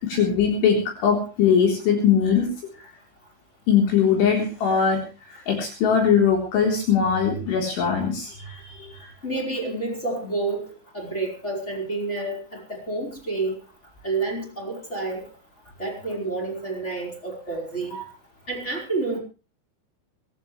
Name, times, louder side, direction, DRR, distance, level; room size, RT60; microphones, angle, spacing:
voice 1, 0.0-2.5 3.7-5.0 5.3-9.1 17.9-18.0, left 7 dB, 65° left, 1 dB, 6.2 m, -21 dB
voice 2, 9.2-10.7 10.9-13.5 14.0-15.2 15.8-18.0 18.5-19.2, right 3 dB, 15° left, -1 dB, 4.8 m, -29 dB
23.5 x 14.0 x 3.3 m, 0.33 s
omnidirectional pair, 6.0 m